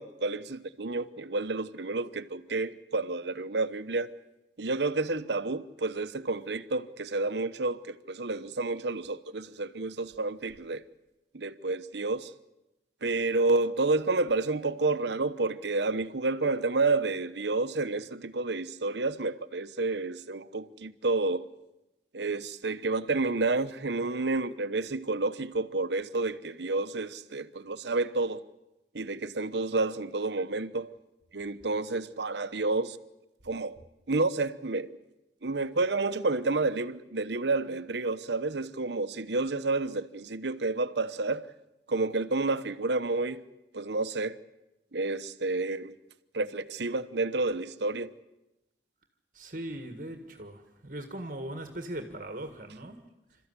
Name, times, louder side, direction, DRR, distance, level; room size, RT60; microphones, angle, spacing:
voice 1, 0.0-4.1 4.6-10.8 11.3-12.3 13.0-21.5 22.1-28.4 28.9-30.9 31.3-33.0 33.4-33.8 34.1-34.9 35.4-41.5 41.9-43.4 43.7-44.4 44.9-45.9 46.3-48.1, right 3 dB, 75° right, 1.0 m, -30 dB
voice 2, 49.3-53.0, right 1 dB, 45° right, 1.8 m, -39 dB
28.0 x 13.5 x 9.7 m
head